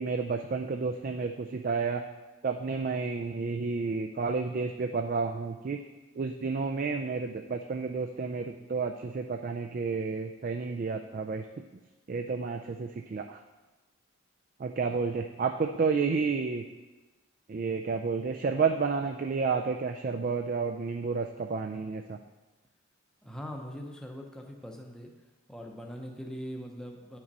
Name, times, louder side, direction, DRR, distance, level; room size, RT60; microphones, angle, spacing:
voice 1, 0.0-2.0 2.4-5.8 6.2-11.4 12.1-13.4 14.6-16.6 17.5-22.2, right 4 dB, 40° right, 4 dB, 0.3 m, -31 dB
voice 2, 23.2-25.1 25.5-27.2, equal, 5° left, 1 dB, 0.7 m, -41 dB
9.3 x 6.0 x 4.1 m, 1.2 s
head